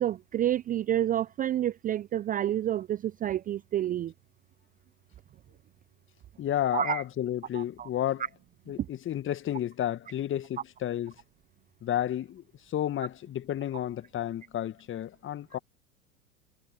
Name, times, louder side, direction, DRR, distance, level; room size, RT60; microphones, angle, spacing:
voice 1, 0.0-4.1 6.7-7.0 7.5-7.9 8.8-8.9, right 11 dB, 20° right, 0.6 m, -29 dB
voice 2, 6.4-8.2 8.7-11.2 11.8-15.6, left 11 dB, 30° left, 1.8 m, -32 dB
figure-of-eight pair, 85°, 40 cm